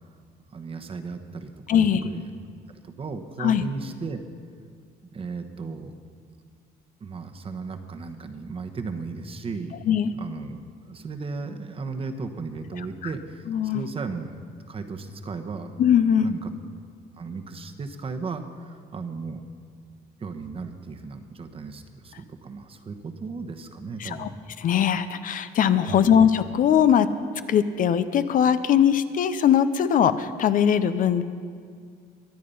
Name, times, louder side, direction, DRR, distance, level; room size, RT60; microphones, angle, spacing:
voice 1, 0.5-2.3 2.7-4.2 5.1-5.9 7.0-9.7 10.1-10.6 10.9-14.3 14.7-15.7 16.2-16.5 17.2-19.4 20.2-24.4 25.9-26.2, right 4 dB, 35° right, 6 dB, 1.1 m, -35 dB
voice 2, 1.7-2.1 3.4-3.6 9.8-10.1 13.0-13.1 13.5-13.9 15.8-16.3 24.0-24.3 24.6-27.1 27.5-31.2, left 8 dB, 55° left, 12 dB, 0.6 m, -21 dB
23.5 x 8.5 x 5.5 m, 2.1 s
cardioid pair, 110°, 17 cm